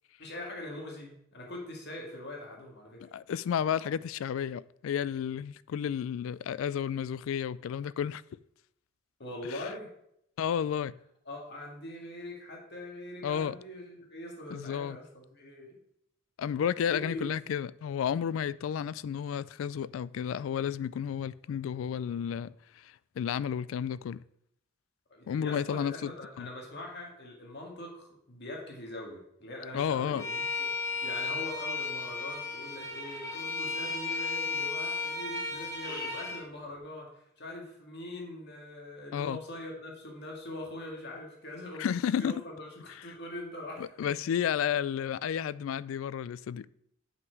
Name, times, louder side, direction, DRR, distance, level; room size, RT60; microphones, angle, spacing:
voice 1, 0.2-3.1 9.2-9.9 11.3-15.8 16.9-17.3 25.1-30.7 31.0-41.9 42.2-44.1, left 1 dB, 55° left, 2.0 m, -42 dB
voice 2, 3.0-8.2 9.5-9.6 10.4-10.9 13.2-13.6 14.5-15.0 16.4-24.2 25.3-26.1 26.4-26.5 29.7-30.2 39.1-39.4 41.8-42.3 43.8-46.7, left 8 dB, 75° left, 0.3 m, -32 dB
Bowed string instrument, 30.2-36.4, left 4 dB, 15° left, 1.5 m, -34 dB
7.4 x 5.8 x 4.6 m
head